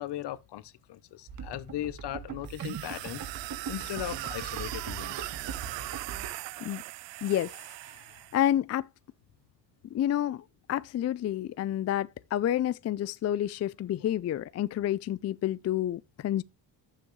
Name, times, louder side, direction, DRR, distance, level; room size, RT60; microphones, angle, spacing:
voice 1, 0.0-3.3 3.7-5.3, left 13 dB, 65° left, 0.9 m, -38 dB
sound 1, 1.3-6.3, right 6 dB, 45° right, 1.8 m, -40 dB
sound 2, 2.5-8.4, right 19 dB, 80° right, 0.5 m, -39 dB
voice 2, 7.2-7.5 7.9-8.0 8.3-8.9 9.9-16.4, left 11 dB, 40° left, 0.4 m, -29 dB
12.0 x 7.3 x 3.2 m
cardioid pair, 105°, 43 cm